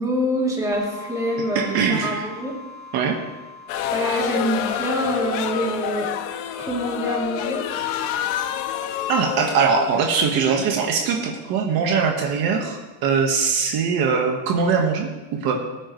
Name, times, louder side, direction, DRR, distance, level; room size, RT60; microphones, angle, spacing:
voice 1, 0.0-2.6 3.9-6.1 6.6-7.6, equal, 10° right, -4 dB, 3.0 m, -25 dB
sound 1, 0.7-7.2, left 3 dB, 40° left, 3.5 m, -43 dB
voice 2, 1.5-2.3 2.9-3.1 9.1-15.6, right 5 dB, 55° right, 2 dB, 1.6 m, -21 dB
sound 2, 3.7-10.8, left 10 dB, 90° left, 1.3 m, -28 dB
21.5 x 9.4 x 3.2 m, 1.2 s
cardioid pair, 155°, 44 cm